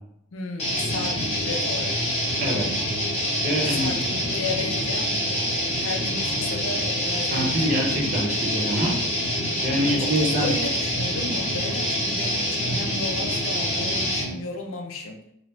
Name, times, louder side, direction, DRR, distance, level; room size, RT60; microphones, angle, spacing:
voice 1, 0.3-2.0 3.6-7.8 9.9-15.2, left 3 dB, 65° left, 3 dB, 0.5 m, -34 dB
sound 1, 0.6-14.3, equal, 30° left, 0.9 m, -26 dB
voice 2, 2.4-2.9 3.4-4.0 7.3-9.0 9.6-10.5, equal, 35° right, -2 dB, 0.7 m, -25 dB
2.9 x 2.5 x 3.2 m, 0.77 s
head